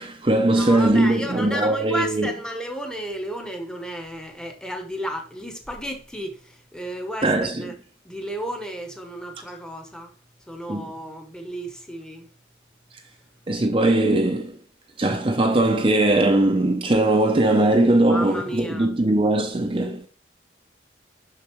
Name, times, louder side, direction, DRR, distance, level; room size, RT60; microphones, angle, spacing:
voice 1, 0.0-2.3 7.2-7.7 10.7-10.9 13.5-14.6 15.0-20.1, right 2 dB, 30° right, 0.5 m, -20 dB
voice 2, 0.6-7.7 8.0-10.1 10.5-12.3 18.1-18.9, equal, 5° left, 0.9 m, -33 dB
6.7 x 6.4 x 3.1 m
head